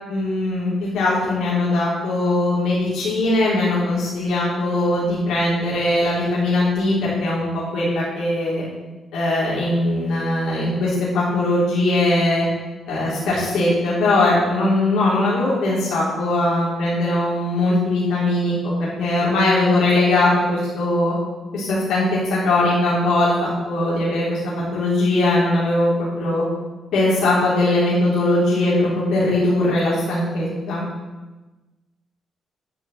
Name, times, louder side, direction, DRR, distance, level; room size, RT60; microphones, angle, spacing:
voice 1, 0.1-8.6 9.1-12.5 12.9-21.1 21.5-24.4 24.7-26.4 26.9-30.8, left 2 dB, 85° left, -7 dB, 3.5 m, -20 dB
11.0 x 5.3 x 7.6 m, 1.2 s
cardioid pair, 130°, 0 cm